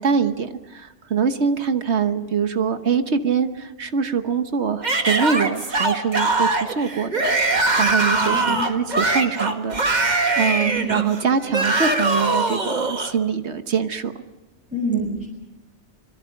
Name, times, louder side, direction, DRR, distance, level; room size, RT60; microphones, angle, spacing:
voice 1, 0.0-7.3 7.8-14.1 14.9-15.1, right 6 dB, 70° right, 9 dB, 1.4 m, -24 dB
Yell / Screaming, 4.8-13.1, right 2 dB, 40° right, 1.9 m, -22 dB
voice 2, 8.1-8.7 10.6-11.0 14.7-15.3, equal, 5° right, -3 dB, 6.7 m, -27 dB
26.5 x 22.0 x 6.5 m, 1.0 s
omnidirectional pair, 1.2 m